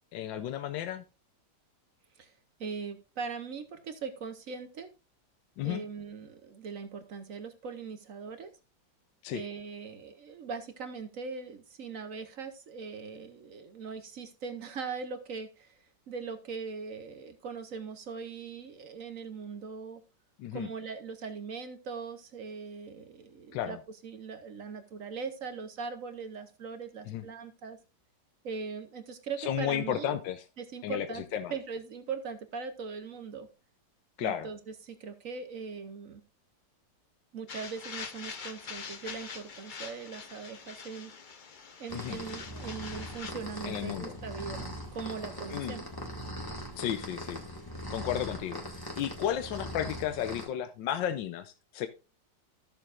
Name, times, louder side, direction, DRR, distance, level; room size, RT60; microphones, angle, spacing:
voice 1, 0.1-1.0 5.6-5.8 9.2-9.4 20.4-20.7 23.5-23.8 27.1-27.2 29.5-30.4 30.8-31.5 34.2-34.5 41.9-42.2 43.7-44.1 45.5-45.8 46.8-47.4 47.9-48.6 49.0-51.9, left 10 dB, 85° left, 10 dB, 1.4 m, -33 dB
voice 2, 2.6-4.9 5.6-8.5 9.3-20.0 20.5-23.8 24.0-27.8 28.4-30.2 30.6-31.2 31.5-33.5 34.2-36.2 37.3-41.1 41.8-44.6 44.9-45.9, right 5 dB, 55° right, 8 dB, 1.0 m, -40 dB
sound 1, 37.5-43.3, left 5 dB, 60° left, 0.5 m, -44 dB
sound 2, 41.9-50.4, equal, 10° left, 1.6 m, -40 dB
14.0 x 6.9 x 2.5 m, 0.32 s
omnidirectional pair, 2.0 m